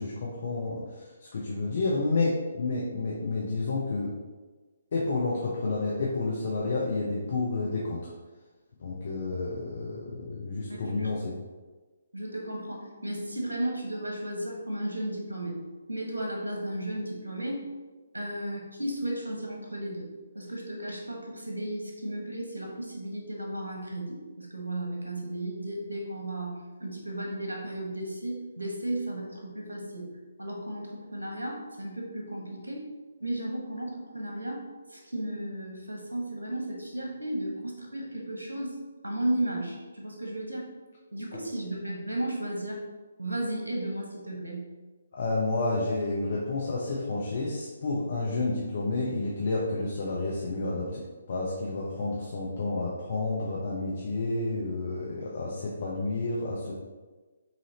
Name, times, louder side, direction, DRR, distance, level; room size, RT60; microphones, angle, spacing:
voice 1, 0.0-4.1 4.9-8.0 8.8-11.3 45.1-51.0 51.3-56.7, left 3 dB, 50° left, -4 dB, 0.7 m, -30 dB
voice 2, 12.1-15.5 15.9-17.6 18.1-20.1 20.3-26.5 26.8-30.1 30.4-32.9 33.2-34.6 34.9-38.7 39.0-40.7 41.1-42.8 43.2-44.6, right 1 dB, 75° right, 0 dB, 1.1 m, -34 dB
5.7 x 2.8 x 2.9 m, 1.3 s
figure-of-eight pair, 140°, 0 cm